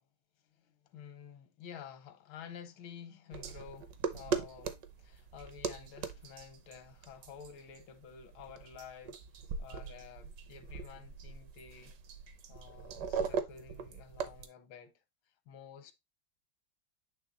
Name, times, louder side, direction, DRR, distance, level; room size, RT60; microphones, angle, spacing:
voice 1, 0.6-9.2 9.6-11.9 12.5-15.0 15.5-15.9, left 7 dB, 85° left, 1.6 m, -51 dB
sound 1, 3.3-14.5, right 6 dB, 65° right, 1.3 m, -40 dB
8.4 x 3.2 x 3.8 m
omnidirectional pair, 2.2 m